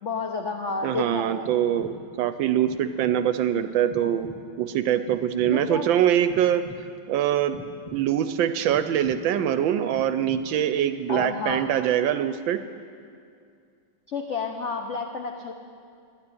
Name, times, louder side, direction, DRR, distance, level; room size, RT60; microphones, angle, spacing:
voice 1, 0.0-1.5 5.5-5.9 11.1-11.6 14.1-15.5, left 4 dB, 80° left, 3 dB, 0.6 m, -30 dB
voice 2, 0.8-6.6 7.1-7.6 7.9-12.6, right 10 dB, 75° right, 11 dB, 1.2 m, -24 dB
sound 1, 1.4-2.2 2.7-3.4 3.9-4.7 5.1-5.9 6.3-7.1 7.5-8.3 8.7-9.5 9.9-10.7 11.1-11.9, left 1 dB, 15° left, 1.8 m, -44 dB
12.0 x 9.1 x 9.6 m, 2.3 s
omnidirectional pair, 2.3 m